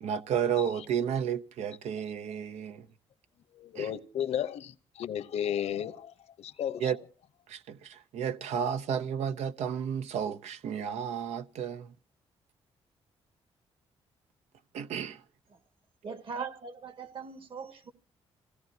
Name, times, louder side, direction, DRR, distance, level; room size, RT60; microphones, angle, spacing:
voice 1, 0.0-2.9 3.7-3.9 6.8-7.0 7.5-11.9 14.7-15.2, right 8 dB, 85° right, 0.9 m, -32 dB
voice 2, 3.6-6.1 6.4-6.8, left 9 dB, 75° left, 0.9 m, -33 dB
voice 3, 16.0-17.9, right 5 dB, 55° right, 2.0 m, -40 dB
27.0 x 17.0 x 2.8 m
cardioid pair, 110°, 11 cm